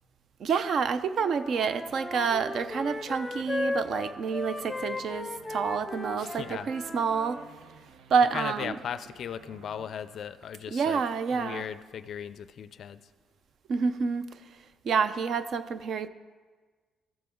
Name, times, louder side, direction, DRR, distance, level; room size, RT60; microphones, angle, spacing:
voice 1, 0.4-7.4 8.1-8.8 10.7-11.7 13.7-16.1, right 5 dB, 50° right, 12 dB, 0.6 m, -28 dB
Wind instrument woodwind instrument, 1.2-7.5, left 2 dB, 10° left, 0.7 m, -36 dB
sound 1, 1.9-10.9, right 6 dB, 80° right, 0.9 m, -55 dB
voice 2, 6.2-6.7 8.3-11.0 11.3-13.1, left 8 dB, 50° left, 14 dB, 0.4 m, -37 dB
14.5 x 14.0 x 3.7 m, 1.4 s
cardioid pair, 160°, 0 cm